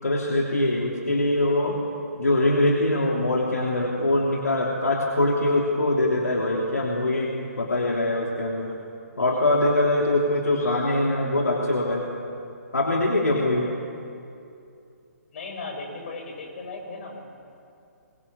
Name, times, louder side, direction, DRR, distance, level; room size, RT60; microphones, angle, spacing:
voice 1, 0.0-1.8 2.2-7.3 7.6-8.7 9.2-12.0 12.7-13.7, left 1 dB, 75° left, -1 dB, 3.1 m, -23 dB
voice 2, 15.3-17.2, left 3 dB, 45° left, 2 dB, 6.7 m, -36 dB
24.5 x 22.0 x 7.2 m, 2.6 s
figure-of-eight pair, 135°, 9 cm